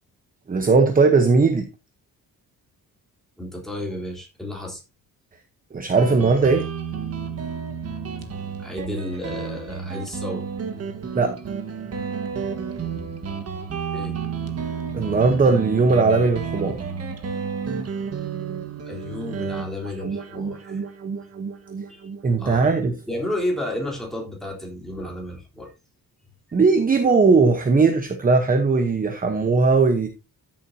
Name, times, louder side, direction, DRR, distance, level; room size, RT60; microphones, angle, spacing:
voice 1, 0.5-1.7 5.7-6.7 11.1-11.4 14.9-16.8 22.2-23.0 26.5-30.1, right 4 dB, 25° right, 1.0 m, -18 dB
voice 2, 3.4-4.8 8.6-10.4 13.9-14.1 18.9-20.9 21.9-22.1 22.4-22.7 23.1-25.7, left 1 dB, ahead, 3.5 m, -32 dB
Guitar, 6.0-23.2, right 6 dB, 40° right, 1.5 m, -31 dB
13.5 x 7.3 x 2.7 m
wide cardioid pair, 170°, 36 cm